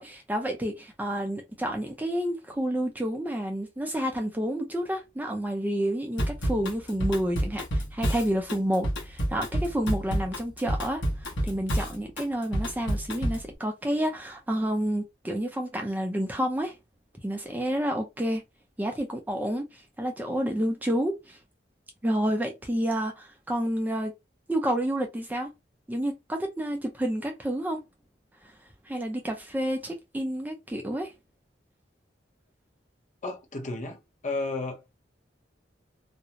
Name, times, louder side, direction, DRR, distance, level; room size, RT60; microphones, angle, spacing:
voice 1, 0.0-16.8 17.2-18.4 18.8-21.4 22.0-24.1 24.5-25.5 25.9-27.8 28.9-31.1, equal, 10° right, 0.4 m, -29 dB
Drum kit / Drum, 6.2-13.5, equal, 75° left, 0.9 m, -29 dB
voice 2, 33.2-34.0 34.2-35.0, left 2 dB, 45° left, 0.7 m, -33 dB
2.5 x 2.0 x 2.8 m
head